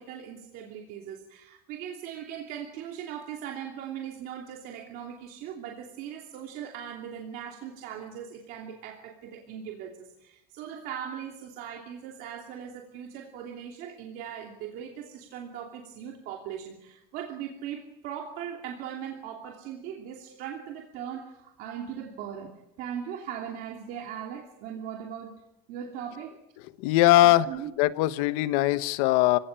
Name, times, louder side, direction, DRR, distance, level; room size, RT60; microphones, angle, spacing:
voice 1, 0.0-25.4 25.7-26.3 27.2-27.7, right 9 dB, 55° right, 2 dB, 2.9 m, -39 dB
voice 2, 26.8-27.5 27.8-29.4, left 16 dB, 75° left, 13 dB, 1.3 m, -21 dB
27.0 x 17.5 x 9.1 m, 0.88 s
cardioid pair, 175°, 19 cm